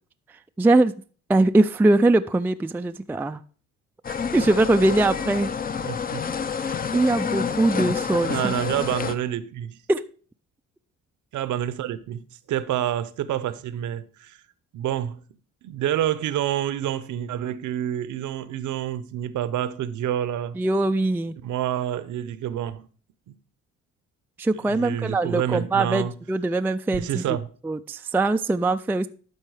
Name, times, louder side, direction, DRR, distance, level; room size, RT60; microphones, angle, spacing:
voice 1, 0.6-0.9 1.3-3.4 4.1-5.5 6.6-8.5 9.9-10.0 20.6-21.4 24.4-27.2 27.6-29.1, right 2 dB, 5° right, 0.3 m, -22 dB
sound 1, 4.0-9.1, left 6 dB, 30° left, 0.6 m, -28 dB
voice 2, 5.8-6.3 8.3-9.8 11.3-12.2 12.5-14.4 14.7-15.2 15.6-20.6 21.4-22.9 24.6-26.1 26.9-27.5, right 11 dB, 75° right, 0.8 m, -28 dB
12.0 x 4.4 x 4.8 m
cardioid pair, 90°, 30 cm